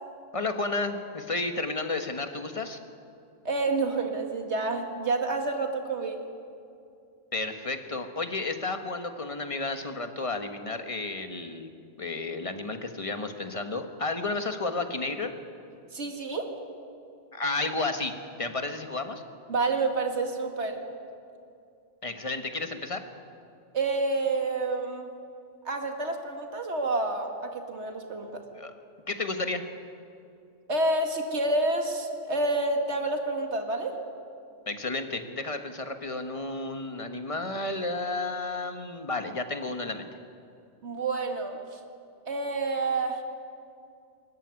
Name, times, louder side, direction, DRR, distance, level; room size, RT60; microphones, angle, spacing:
voice 1, 0.3-2.8 7.3-11.7 12.0-15.3 17.3-18.1 18.4-19.2 22.0-23.0 28.5-28.7 29.1-29.6 34.7-40.1, left 3 dB, 30° left, 6 dB, 1.4 m, -32 dB
voice 2, 3.4-6.2 15.9-16.5 19.5-20.8 23.7-25.1 25.6-28.4 30.7-33.9 40.8-41.8 42.3-43.2, right 2 dB, 70° right, 3 dB, 2.3 m, -28 dB
24.0 x 14.0 x 9.6 m, 2.5 s
omnidirectional pair, 1.2 m